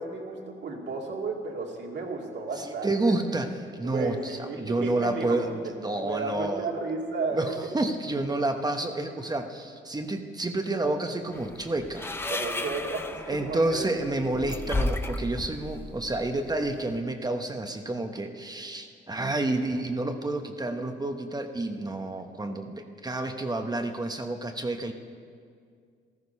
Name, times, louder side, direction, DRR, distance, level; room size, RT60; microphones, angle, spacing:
voice 1, 0.0-3.1 3.8-7.5 12.3-13.9 14.3-14.4, right 3 dB, 60° right, 0 dB, 2.5 m, -33 dB
voice 2, 2.6-6.7 7.3-12.0 13.3-24.9, right 2 dB, 20° right, 6 dB, 1.0 m, -29 dB
sound 1, 11.3-17.0, left 2 dB, 10° left, 0.7 m, -34 dB
14.5 x 14.0 x 5.5 m, 2.2 s
cardioid pair, 90°, 20 cm